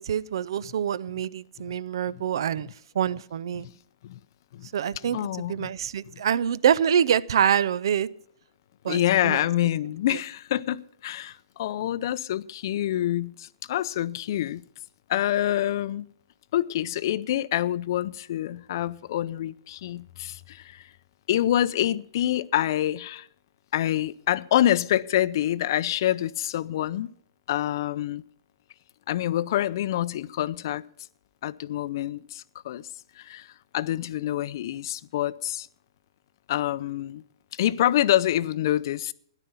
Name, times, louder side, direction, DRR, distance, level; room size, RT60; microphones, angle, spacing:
voice 1, 0.0-2.7 2.9-3.7 4.7-5.2 5.5-8.1 8.8-9.4, right 8 dB, 65° right, 0.5 m, -25 dB
voice 2, 5.1-5.7 6.1-6.2 8.9-14.6 15.1-16.1 16.5-20.8 21.3-23.3 23.7-27.1 27.5-28.2 29.1-30.8 31.4-32.8 33.2-33.5 33.7-35.7 36.5-37.2 37.5-39.1, left 12 dB, 50° left, 0.5 m, -26 dB
13.0 x 11.0 x 5.6 m
hypercardioid pair, 150°, 3 cm